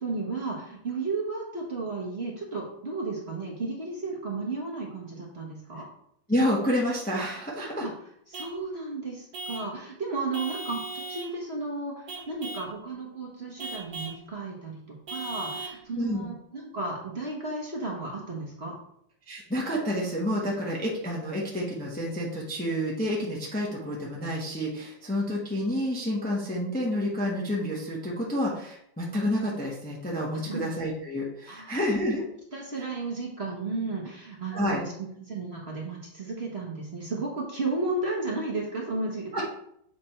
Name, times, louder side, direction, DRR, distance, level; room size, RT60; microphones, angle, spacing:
voice 1, 0.0-5.9 7.8-7.9 8.3-18.7 30.3-30.6 31.5-31.8 32.5-39.4, right 3 dB, 35° right, -3 dB, 1.3 m, -33 dB
voice 2, 6.3-7.9 15.9-16.3 19.3-32.2 34.5-34.8 39.3-39.4, equal, 5° left, -4 dB, 0.9 m, -29 dB
Vehicle horn car horn honking / Truck, 8.3-8.6 9.3-9.7 10.3-11.3 12.1-12.7 13.6-14.2 15.1-15.8, right 3 dB, 55° right, 1.4 m, -38 dB
7.7 x 3.4 x 4.4 m, 0.72 s
omnidirectional pair, 2.1 m